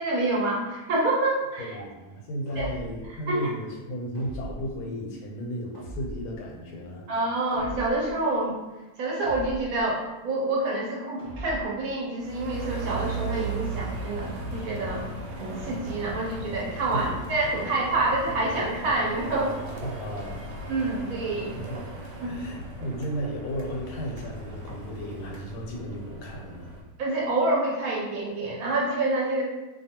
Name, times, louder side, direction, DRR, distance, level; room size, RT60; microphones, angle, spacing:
voice 1, 0.0-1.7 2.6-2.7 3.3-3.5 7.1-8.5 9.0-15.1 15.4-19.5 20.7-21.6 22.2-22.3 27.0-29.4, right 2 dB, 70° right, -4 dB, 1.0 m, -27 dB
voice 2, 1.6-7.0 16.9-17.2 19.8-20.4 21.4-26.7, equal, 85° left, 0 dB, 1.2 m, -35 dB
sound 1, 2.4-3.1 4.1-4.8 5.7-6.4 7.5-8.1 9.2-9.9 11.2-11.8, right 1 dB, 30° left, 0.4 m, -39 dB
sound 2, 12.2-26.8, right 2 dB, 90° right, 1.2 m, -37 dB
2.7 x 2.3 x 2.8 m, 1.1 s
omnidirectional pair, 1.7 m